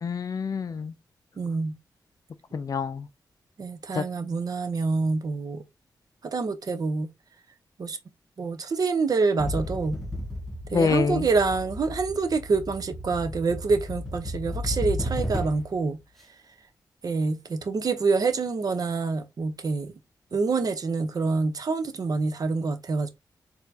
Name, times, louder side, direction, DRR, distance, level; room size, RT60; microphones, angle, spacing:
voice 1, 0.0-0.9 2.5-3.1 3.9-4.0 10.7-11.3, left 5 dB, 50° left, 0.4 m, -26 dB
voice 2, 1.4-1.8 3.6-5.6 6.2-7.1 7.8-8.0 8.4-10.0 10.7-16.0 17.0-19.9 20.3-23.1, right 4 dB, 55° right, 0.8 m, -26 dB
sound 1, 9.4-15.8, left 1 dB, 5° left, 1.2 m, -33 dB
4.3 x 2.8 x 2.7 m
cardioid pair, 80°, 7 cm